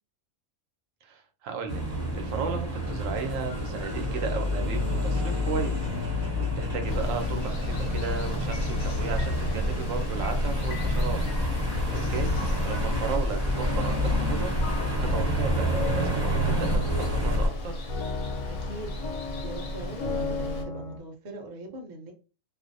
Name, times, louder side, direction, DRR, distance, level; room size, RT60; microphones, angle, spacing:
voice 1, 1.0-6.2 6.6-11.2 11.6-12.3 12.6-14.6 15.1-17.7, right 5 dB, 75° right, 5 dB, 1.0 m, -35 dB
sound 1, 1.7-17.5, left 1 dB, 15° right, 0.8 m, -28 dB
sound 2, 3.3-21.0, left 4 dB, 90° left, 1.0 m, -40 dB
Water, 6.9-20.6, equal, 60° left, 0.6 m, -33 dB
voice 2, 12.0-12.3 18.5-19.0 19.4-22.1, right 1 dB, 55° right, 2 dB, 0.5 m, -41 dB
2.5 x 2.0 x 2.5 m, 0.34 s
omnidirectional pair, 1.4 m